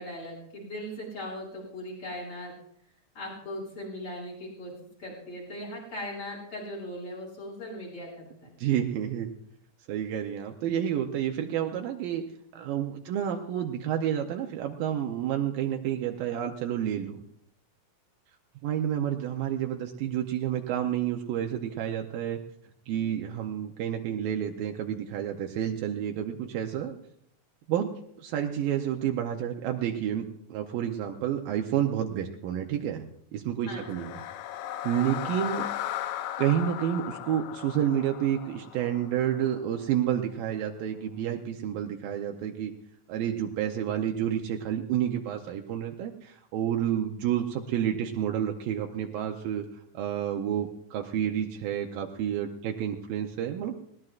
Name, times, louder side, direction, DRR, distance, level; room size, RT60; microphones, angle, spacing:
voice 1, 0.0-2.5 3.2-4.7 5.0-8.5 33.7-34.1, left 1 dB, 40° left, -4 dB, 7.2 m, -39 dB
voice 2, 8.6-9.3 9.9-12.2 12.5-17.2 18.6-22.4 22.9-26.9 27.7-27.9 28.2-33.1 33.3-34.2 34.8-35.7 36.4-42.7 43.1-49.7 49.9-53.8, right 10 dB, 80° right, 3 dB, 2.5 m, -29 dB
sound 1, 33.6-39.8, left 12 dB, 80° left, 2.5 m, -37 dB
21.0 x 18.5 x 2.5 m, 0.70 s
omnidirectional pair, 4.2 m